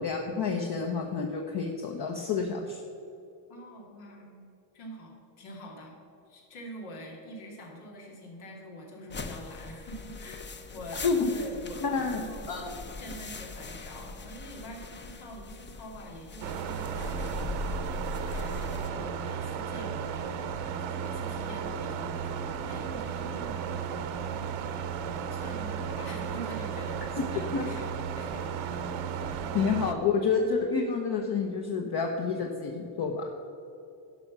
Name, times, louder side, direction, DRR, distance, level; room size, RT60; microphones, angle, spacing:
voice 1, 0.0-2.8 11.0-11.3 11.8-12.2 12.5-12.7 27.2-27.6 29.5-33.3, left 5 dB, 50° left, 2 dB, 1.0 m, -29 dB
voice 2, 3.5-4.5 4.7-6.0 6.3-10.4 10.7-12.7 13.0-17.7 18.2-24.6 25.0-28.9, equal, 85° left, -1 dB, 2.6 m, -45 dB
sound 1, 9.1-18.9, left 3 dB, 25° left, 0.6 m, -40 dB
sound 2, 16.4-29.9, right 7 dB, 80° right, 1.0 m, -34 dB
11.5 x 5.5 x 6.0 m, 2.7 s
cardioid pair, 110°, 49 cm